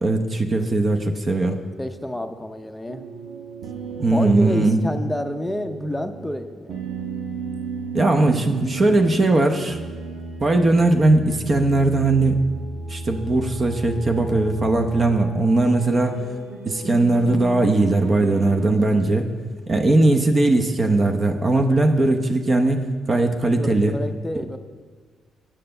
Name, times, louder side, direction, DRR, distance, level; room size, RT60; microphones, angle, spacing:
voice 1, 0.0-1.6 4.0-4.8 7.9-9.8 10.4-12.4 12.9-16.2 16.7-19.3 19.7-22.8 23.1-24.0, right 2 dB, 35° right, 4 dB, 0.8 m, -19 dB
voice 2, 1.8-3.0 4.0-6.9 18.8-19.1 23.5-24.6, left 1 dB, 5° left, 6 dB, 0.6 m, -29 dB
sound 1, 2.9-18.8, right 4 dB, 85° right, 1.1 m, -34 dB
8.9 x 6.6 x 6.6 m, 1.5 s
cardioid pair, 110°, 0 cm